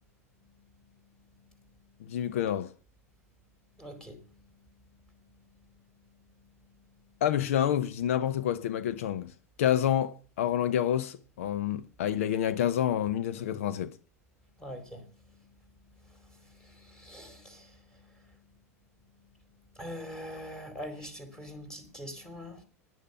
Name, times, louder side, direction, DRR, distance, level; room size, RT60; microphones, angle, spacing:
voice 1, 2.0-2.7 7.2-9.3 9.6-13.9, left 10 dB, 60° left, 0.8 m, -28 dB
voice 2, 3.7-4.6 14.6-15.5 16.0-18.4 19.7-22.6, equal, 10° left, 4.3 m, -44 dB
10.5 x 10.0 x 6.8 m
figure-of-eight pair, 85°, 8 cm